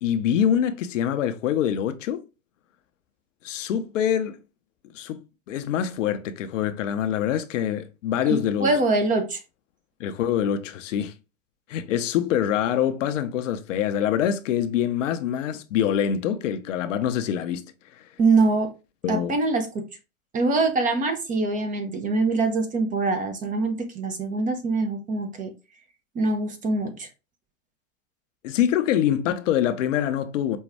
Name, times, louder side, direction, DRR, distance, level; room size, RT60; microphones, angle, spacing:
voice 1, 0.0-2.2 3.4-4.4 4.9-5.2 5.5-8.7 10.0-11.1 11.7-17.7 19.0-19.4 28.4-30.6, left 9 dB, 60° left, 0.7 m, -25 dB
voice 2, 8.3-9.4 18.2-18.7 19.1-19.8 20.3-25.5 26.1-27.1, right 3 dB, 20° right, 0.6 m, -24 dB
5.2 x 2.3 x 3.4 m
hypercardioid pair, 100°, 42 cm